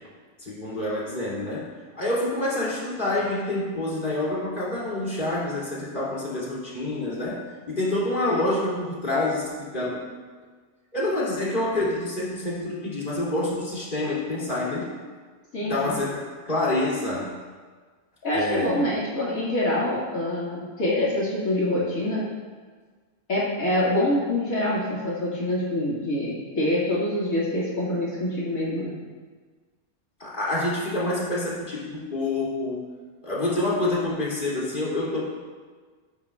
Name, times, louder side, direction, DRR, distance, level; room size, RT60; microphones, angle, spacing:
voice 1, 0.4-10.0 10.9-14.9 15.6-17.3 18.3-18.9 30.2-32.8 33.2-35.2, left 2 dB, 35° left, -7 dB, 3.2 m, -27 dB
voice 2, 15.5-15.9 18.2-22.3 23.3-28.9, left 1 dB, 70° left, -7 dB, 2.6 m, -25 dB
19.5 x 9.7 x 2.4 m, 1.5 s
omnidirectional pair, 1.5 m